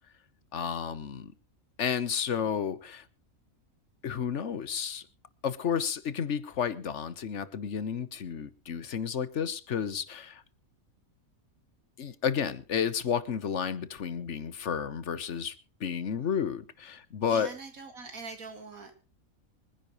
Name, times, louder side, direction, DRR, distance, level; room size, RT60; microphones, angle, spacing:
voice 1, 0.5-1.3 1.8-3.0 4.0-5.0 5.4-10.4 12.0-17.5, left 7 dB, 55° left, 1.3 m, -31 dB
voice 2, 17.2-18.9, right 3 dB, 75° right, 2.4 m, -43 dB
25.5 x 10.5 x 3.0 m
omnidirectional pair, 1.5 m